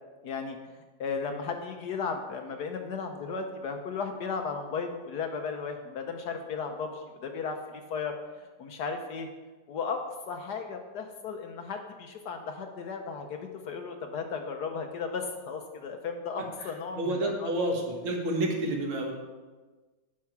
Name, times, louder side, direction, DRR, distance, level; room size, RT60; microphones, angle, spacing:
voice 1, 0.2-0.6 1.0-8.2 8.6-9.3 9.7-17.5, left 5 dB, 65° left, 5 dB, 1.1 m, -35 dB
voice 2, 17.0-19.1, right 1 dB, 85° right, 1 dB, 2.3 m, -29 dB
9.6 x 5.6 x 5.8 m, 1.3 s
omnidirectional pair, 2.2 m